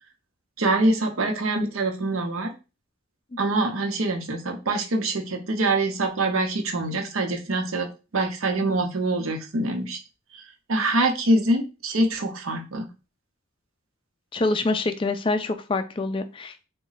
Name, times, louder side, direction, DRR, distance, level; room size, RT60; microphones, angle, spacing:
voice 1, 0.6-2.5 3.4-10.0 10.7-12.8, right 2 dB, 75° right, 4 dB, 0.8 m, -24 dB
voice 2, 14.3-16.6, left 2 dB, 25° left, 7 dB, 0.3 m, -26 dB
4.0 x 2.2 x 3.9 m, 0.30 s
head